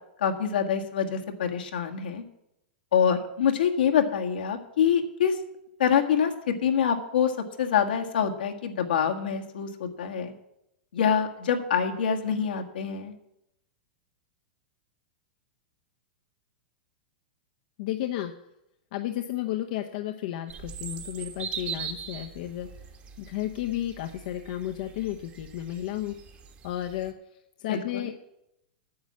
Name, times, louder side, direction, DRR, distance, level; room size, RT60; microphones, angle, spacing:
voice 1, 0.2-2.2 2.9-5.4 5.8-7.3 7.6-10.3 10.9-13.1 27.7-28.1, left 7 dB, 85° left, 4 dB, 1.7 m, -25 dB
voice 2, 17.8-18.3 18.9-22.7 23.2-26.1 26.6-27.1 27.6-28.1, left 13 dB, 60° left, 5 dB, 0.8 m, -32 dB
sound 1, 20.5-27.1, right 7 dB, 30° right, 1.4 m, -41 dB
9.5 x 7.2 x 8.5 m, 0.84 s
hypercardioid pair, 130°, 5 cm